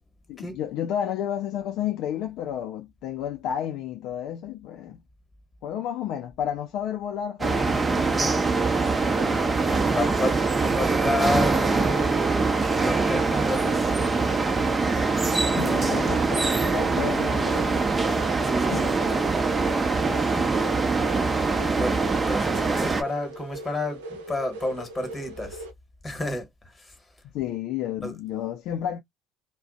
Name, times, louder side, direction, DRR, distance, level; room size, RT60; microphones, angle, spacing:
voice 1, 0.3-5.0 5.6-8.1 15.4-17.7 18.7-19.1 27.3-29.0, left 10 dB, 60° left, 0.4 m, -31 dB
sound 1, 7.4-23.0, right 3 dB, 25° right, 0.7 m, -23 dB
voice 2, 9.1-9.6 9.8-13.9 15.4-16.0 18.4-19.0 21.7-25.7 26.0-26.9 28.0-28.1, left 1 dB, 20° left, 1.2 m, -31 dB
sound 2, 16.6-25.7, right 1 dB, 85° right, 0.6 m, -41 dB
2.5 x 2.1 x 2.4 m
hypercardioid pair, 60°, 0 cm